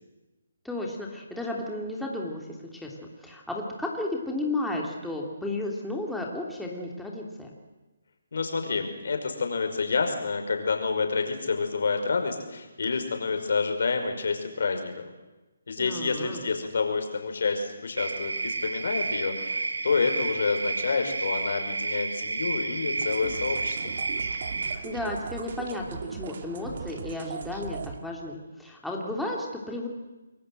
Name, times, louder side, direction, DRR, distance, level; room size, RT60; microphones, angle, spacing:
voice 1, 0.6-2.5 2.7-2.9 3.2-7.5 15.8-16.4 24.8-25.8 26.1-29.9, left 2 dB, ahead, -2 dB, 3.2 m, -33 dB
voice 2, 8.3-15.1 15.7-23.9, left 4 dB, 65° left, 6 dB, 5.5 m, -28 dB
sound 1, 18.0-24.8, right 3 dB, 80° right, 2.8 m, -31 dB
sound 2, 23.0-28.0, right 6 dB, 50° right, 2.3 m, -39 dB
28.5 x 22.0 x 7.9 m, 1.1 s
hypercardioid pair, 155°, 0 cm